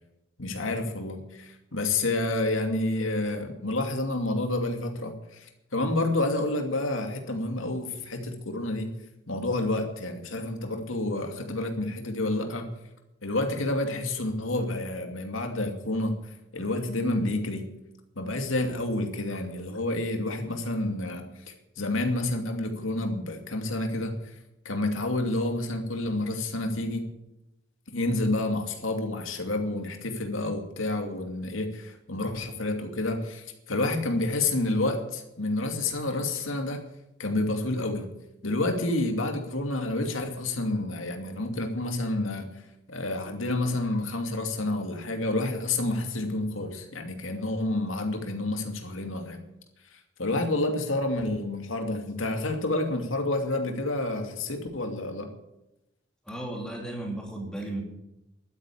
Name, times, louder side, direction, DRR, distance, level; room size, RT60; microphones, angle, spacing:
voice 1, 0.4-8.9 9.3-12.7 13.2-16.1 16.5-17.6 18.2-21.2 21.8-24.1 24.6-27.0 27.9-36.8 37.2-38.1 38.4-42.5 42.9-49.4 50.2-55.3, left 2 dB, 90° left, 4 dB, 2.5 m, -29 dB
voice 2, 56.3-57.8, right 1 dB, 5° left, 0 dB, 2.9 m, -34 dB
12.5 x 9.5 x 8.4 m, 0.89 s
head